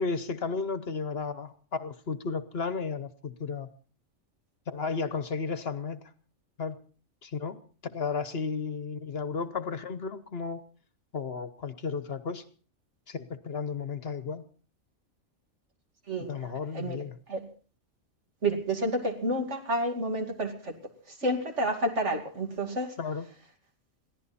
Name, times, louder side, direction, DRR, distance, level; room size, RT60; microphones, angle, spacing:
voice 1, 0.0-3.7 4.7-6.0 6.6-6.8 7.2-7.6 7.8-10.6 11.1-12.4 13.1-14.4 16.3-17.2 23.0-23.3, left 5 dB, 50° left, 13 dB, 1.2 m, -33 dB
voice 2, 18.4-20.7 21.2-22.9, right 1 dB, 60° right, 3 dB, 2.8 m, -29 dB
22.0 x 15.5 x 4.2 m, 0.39 s
omnidirectional pair, 1.4 m